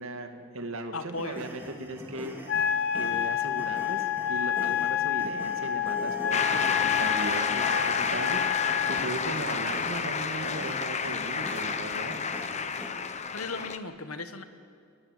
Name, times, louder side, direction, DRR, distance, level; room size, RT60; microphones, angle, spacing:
voice 1, 0.0-2.3 2.9-8.4 8.9-12.2, right 2 dB, 70° right, 6 dB, 2.1 m, -37 dB
voice 2, 0.9-1.5 13.3-14.4, left 3 dB, 85° left, 9 dB, 1.6 m, -36 dB
sound 1, 1.2-12.9, equal, 10° right, 2.8 m, -44 dB
Wind instrument woodwind instrument, 2.5-9.1, left 9 dB, 50° left, 1.2 m, -29 dB
Shout / Cheering / Applause, 6.3-13.8, left 5 dB, 30° left, 0.9 m, -30 dB
29.0 x 21.0 x 7.5 m, 2.3 s
head